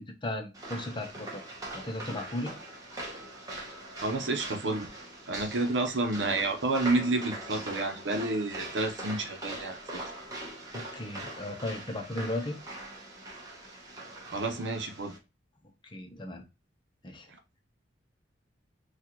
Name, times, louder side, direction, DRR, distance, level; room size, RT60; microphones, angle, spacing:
voice 1, 0.0-1.4 1.7-2.5 10.7-12.6 15.8-16.4 17.0-17.3, left 1 dB, 25° left, 4 dB, 0.7 m, -36 dB
sound 1, 0.5-15.2, right 1 dB, 20° right, 0.9 m, -42 dB
voice 2, 4.0-4.9 5.3-10.0 14.3-15.1, right 2 dB, 85° right, 5 dB, 0.8 m, -30 dB
4.1 x 2.4 x 2.9 m, 0.27 s
head